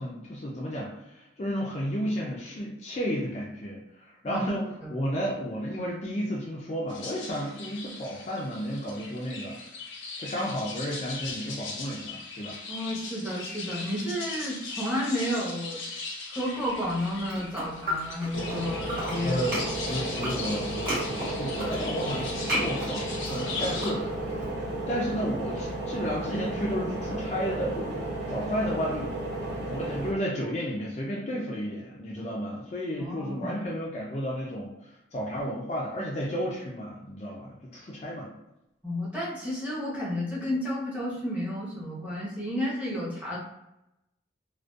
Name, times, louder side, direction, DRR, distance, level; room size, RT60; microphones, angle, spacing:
voice 1, 0.0-9.6 10.2-12.6 19.2-24.3 24.9-27.9 28.3-29.1 29.7-34.7 35.1-38.3, equal, 35° left, -4 dB, 0.3 m, -32 dB
sound 1, 6.9-23.9, left 3 dB, 80° left, 0.6 m, -39 dB
voice 2, 12.7-15.8 16.3-19.4 19.9-20.1 33.0-33.6 38.8-43.4, left 1 dB, 10° right, -7 dB, 0.7 m, -31 dB
sound 2, 16.9-18.6 18.8-24.5, equal, 45° right, 1.0 m, -34 dB
sound 3, 18.3-30.1, right 2 dB, 70° right, 0.6 m, -33 dB
2.5 x 2.1 x 2.3 m, 0.88 s
head